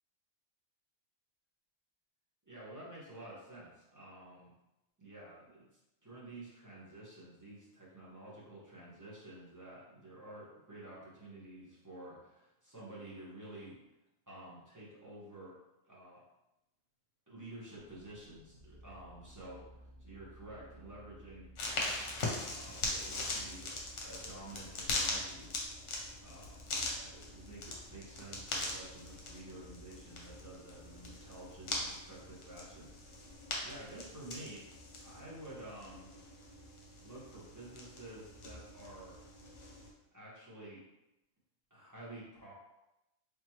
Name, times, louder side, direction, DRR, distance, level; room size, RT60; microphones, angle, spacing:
voice 1, 2.5-4.5 5.0-5.6 6.0-13.8 14.3-15.5 15.8-16.2 17.3-21.5 22.4-23.7 24.0-25.5 26.2-33.2 33.6-34.6 35.0-36.1 37.0-39.3 40.1-40.8 41.7-42.5, right 1 dB, 15° right, -8 dB, 1.1 m, -50 dB
sound 1, 17.7-33.9, equal, 90° right, 1.8 m, -59 dB
sound 2, 21.6-39.9, left 2 dB, 65° left, 1.0 m, -41 dB
3.7 x 3.0 x 3.0 m, 0.92 s
omnidirectional pair, 1.3 m